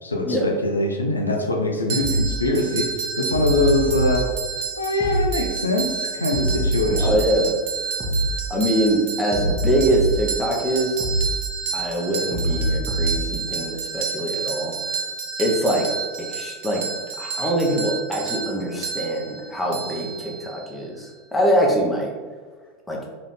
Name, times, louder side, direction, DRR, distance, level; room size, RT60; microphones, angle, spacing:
voice 1, 0.0-4.3 4.8-7.2, left 2 dB, 85° left, 2 dB, 0.5 m, -23 dB
sound 1, 1.9-20.7, right 5 dB, 55° right, 0.6 m, -30 dB
sound 2, 2.0-2.3 3.3-4.2 5.0-5.3 6.3-7.2 8.0-8.3 9.3-10.2 11.0-11.3 12.3-13.2, right 1 dB, 20° right, 1.4 m, -23 dB
voice 2, 7.0-7.6 8.5-11.0 11.7-14.7 15.4-15.9 16.3-16.8 17.2-22.1 22.9-23.0, right 1 dB, 5° left, -2 dB, 1.1 m, -23 dB
4.2 x 3.0 x 4.2 m, 1.5 s
figure-of-eight pair, 85°, 0 cm